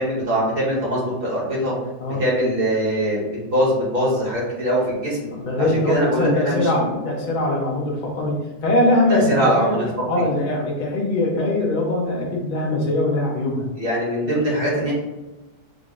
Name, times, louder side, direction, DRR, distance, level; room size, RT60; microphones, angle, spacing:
voice 1, 0.0-1.7 2.2-3.2 3.5-5.3 5.6-7.0 9.1-10.2 13.8-14.9, equal, 40° right, -5 dB, 1.1 m, -22 dB
voice 2, 5.4-9.8 10.1-13.7 14.2-14.4 14.7-14.9, left 1 dB, 75° left, -2 dB, 0.4 m, -22 dB
5.0 x 2.0 x 3.5 m, 1.1 s
omnidirectional pair, 1.9 m